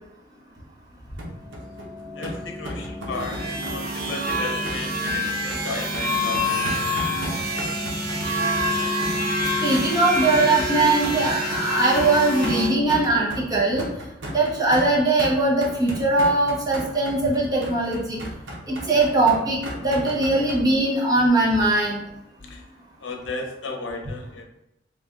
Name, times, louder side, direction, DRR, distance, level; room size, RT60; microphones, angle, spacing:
sound 1, 1.2-20.6, equal, 80° right, 0.9 m, -35 dB
sound 2, 1.3-14.0, equal, 20° left, 0.5 m, -34 dB
voice 1, 2.2-3.4 3.7-6.9 10.2-10.3 22.4-22.6 23.0-24.4, left 3 dB, 90° left, 3 dB, 0.6 m, -34 dB
sound 3, 3.1-12.7, equal, 55° right, 0.6 m, -27 dB
voice 2, 9.6-13.8 14.3-18.2 18.7-22.0, right 2 dB, 20° right, -5 dB, 0.9 m, -21 dB
3.3 x 2.4 x 3.6 m, 0.85 s
head